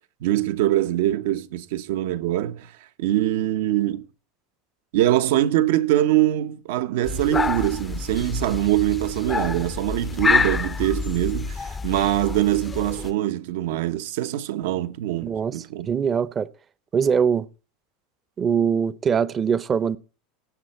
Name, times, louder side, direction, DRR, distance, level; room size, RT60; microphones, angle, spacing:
voice 1, 0.2-2.7 3.0-4.1 4.9-15.9, right 13 dB, 75° right, 1.0 m, -23 dB
sound 1, 7.0-13.1, left 5 dB, 15° left, 0.5 m, -27 dB
voice 2, 15.2-16.5 16.9-17.5 18.4-20.0, right 7 dB, 25° right, 0.7 m, -22 dB
17.0 x 7.1 x 4.3 m
supercardioid pair, 135°, 0 cm